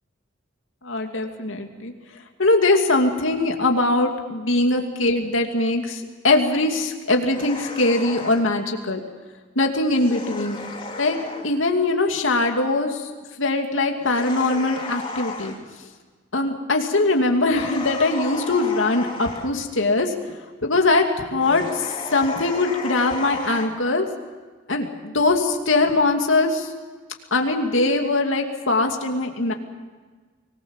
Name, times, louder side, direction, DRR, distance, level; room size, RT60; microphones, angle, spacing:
voice 1, 0.8-1.9 2.4-9.0 9.6-10.6 11.0-13.1 13.4-15.5 16.3-20.1 20.6-24.1 24.7-26.7 27.3-29.5, left 2 dB, 85° left, 3 dB, 2.6 m, -21 dB
sound 1, 7.3-8.5 9.8-11.5 14.0-15.6 17.5-19.5 21.4-23.7, left 3 dB, 25° left, 3.4 m, -34 dB
25.0 x 19.5 x 7.3 m, 1.4 s
head